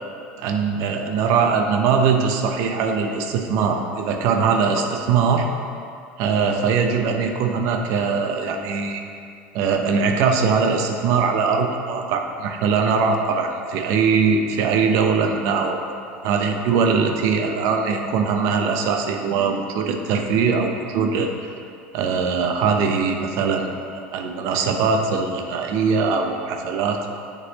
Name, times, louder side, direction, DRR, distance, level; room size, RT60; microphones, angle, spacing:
voice 1, 0.4-5.5 6.2-9.0 9.5-15.8 16.2-21.5 21.9-23.7 24.1-27.1, right 5 dB, 65° right, 3 dB, 0.7 m, -21 dB
9.8 x 3.9 x 3.0 m, 2.5 s
supercardioid pair, 100°, 6 cm